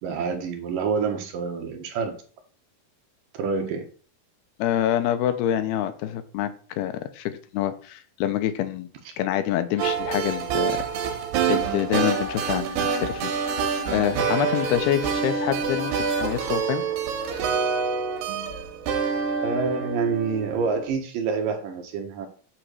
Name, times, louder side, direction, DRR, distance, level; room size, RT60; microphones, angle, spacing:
voice 1, 0.0-2.2 3.3-3.8 19.4-22.3, right 5 dB, 70° right, 5 dB, 2.4 m, -27 dB
voice 2, 4.6-8.9 9.2-10.8 11.5-13.3 13.9-16.8, left 11 dB, 85° left, 10 dB, 2.7 m, -26 dB
sound 1, 9.8-20.9, right 6 dB, 85° right, 3.1 m, -26 dB
8.8 x 3.0 x 6.3 m, 0.42 s
omnidirectional pair, 4.4 m